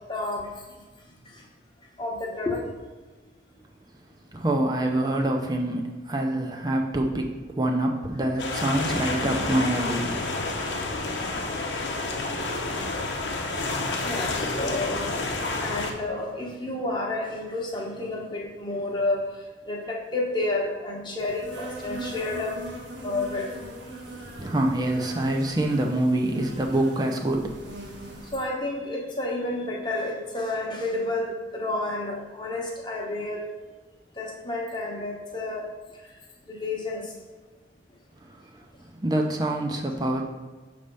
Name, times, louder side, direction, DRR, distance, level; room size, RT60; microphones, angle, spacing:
voice 1, 0.1-0.6 1.3-1.4 2.0-2.6 9.1-9.5 14.0-15.2 15.6-22.6 23.0-23.5 24.2-24.3 28.3-33.5 34.2-35.7 36.5-37.1, left 2 dB, 25° left, -1 dB, 1.0 m, -30 dB
voice 2, 4.3-10.3 24.4-27.6 38.3-38.4 39.0-40.2, right 1 dB, 20° right, 1 dB, 0.5 m, -26 dB
sound 1, 8.4-15.9, left 2 dB, 85° left, 0.8 m, -29 dB
Insect, 21.2-28.4, right 1 dB, 80° right, 1.3 m, -40 dB
6.3 x 3.3 x 5.4 m, 1.3 s
head